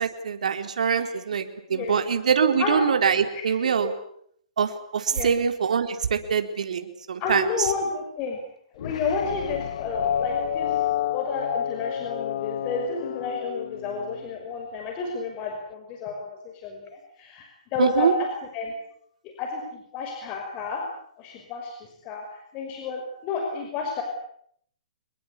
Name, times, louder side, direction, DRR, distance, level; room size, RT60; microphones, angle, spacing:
voice 1, 0.0-3.9 4.6-7.4 17.8-18.1, right 7 dB, 75° right, 7 dB, 4.1 m, -24 dB
voice 2, 0.8-1.2 1.7-2.0 2.6-2.8 3.6-3.7 5.1-5.3 7.2-8.4 8.7-10.7 11.1-16.4 16.6-16.9 17.2-18.1 18.5-18.7 19.4-20.8 21.2-21.8 22.0-24.0, left 5 dB, 30° left, 2 dB, 5.6 m, -31 dB
sound 1, 8.8-14.3, left 10 dB, 60° left, 1.4 m, -30 dB
26.5 x 22.0 x 8.5 m, 0.66 s
hypercardioid pair, 150°, 4 cm